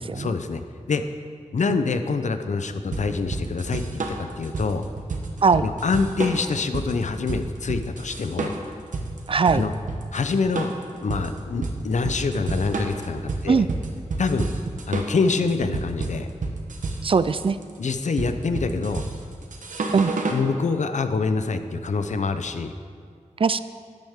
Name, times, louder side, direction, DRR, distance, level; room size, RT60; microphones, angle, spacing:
voice 1, 0.1-0.6 0.9-1.0 1.5-4.9 5.6-8.5 9.5-9.7 10.1-10.7 11.0-13.7 14.2-14.5 14.9-16.3 17.8-19.0 20.3-22.7, left 4 dB, 70° left, 9 dB, 0.6 m, -25 dB
sound 1, 2.9-20.5, right 3 dB, 90° right, 1.0 m, -30 dB
voice 2, 9.3-9.6 13.5-13.7 17.0-17.6 19.9-20.1 23.4-23.6, right 5 dB, 45° right, 14 dB, 0.4 m, -20 dB
13.0 x 9.0 x 3.6 m, 2.2 s
wide cardioid pair, 80°, 13 cm